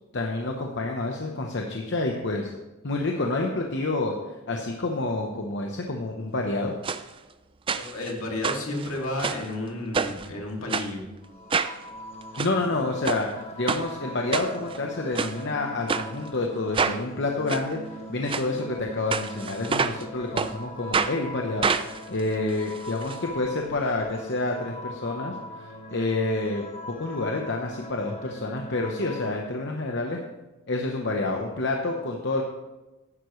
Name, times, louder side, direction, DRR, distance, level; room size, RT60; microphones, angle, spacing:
voice 1, 0.1-2.5 2.8-4.1 4.5-6.8 12.4-13.3 13.6-17.8 18.1-26.6 27.0-30.2 30.7-32.4, left 2 dB, 55° left, 1 dB, 1.0 m, -28 dB
sound 1, 6.8-7.0 7.7-8.1 8.4-9.5 9.9-10.3 10.7-10.9 11.5-11.8 12.2-12.5 13.0-13.2 13.7-13.8 14.3-14.8 15.1-15.3 15.9-16.1 16.7-17.0 17.5-17.6 18.3-18.5 19.1-20.0 20.4-20.5 20.9-21.1 21.6-23.2 23.4-23.5 23.8-23.9, right 5 dB, 25° right, 0.4 m, -27 dB
voice 2, 7.7-11.0, left 2 dB, 70° left, 0 dB, 2.5 m, -32 dB
sound 2, 11.2-29.4, equal, 30° left, 1.7 m, -41 dB
14.5 x 11.0 x 3.2 m, 1.1 s
head